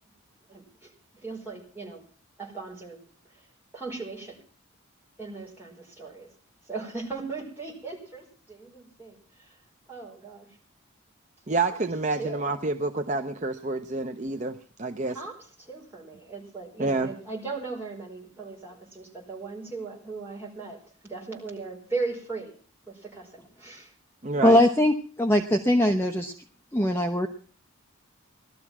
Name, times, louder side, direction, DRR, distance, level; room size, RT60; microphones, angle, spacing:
voice 1, 0.5-2.0 2.4-3.0 3.3-3.4 3.7-4.4 5.2-6.3 6.6-9.6 9.9-10.5 11.6-11.8 12.2-12.5 15.0-20.8 21.0-22.5 22.8-23.9 24.5-24.6, right 3 dB, 10° right, -4 dB, 4.8 m, -38 dB
voice 2, 11.5-15.2 16.8-17.1 24.2-24.6, right 3 dB, 35° right, 7 dB, 0.7 m, -28 dB
voice 3, 24.4-26.3 26.7-27.3, left 1 dB, 10° left, 5 dB, 0.8 m, -21 dB
17.5 x 12.5 x 6.0 m, 0.43 s
head